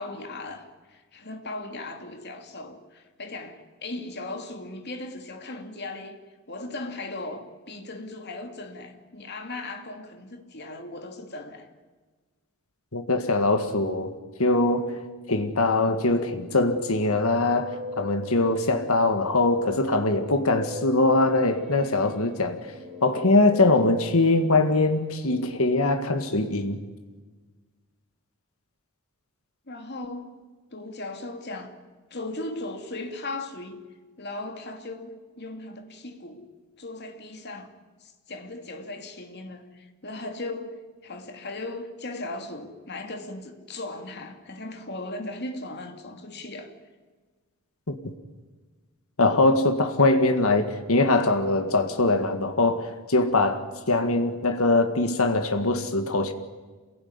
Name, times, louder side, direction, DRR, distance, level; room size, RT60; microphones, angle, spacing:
voice 1, 0.0-6.2 6.5-11.7 29.7-30.3 30.7-31.7 32.1-33.8 34.2-36.5 36.8-37.7 38.0-46.7, left 2 dB, 50° left, 2.8 m, -37 dB
voice 2, 12.9-14.1 14.4-15.0 15.3-22.6 23.0-26.8 47.9-48.0 49.2-56.3, left 2 dB, 70° left, 1.9 m, -22 dB
Guitar, 16.4-18.9 19.7-25.1, left 2 dB, 30° right, 3.8 m, -40 dB
27.5 x 17.0 x 9.7 m
head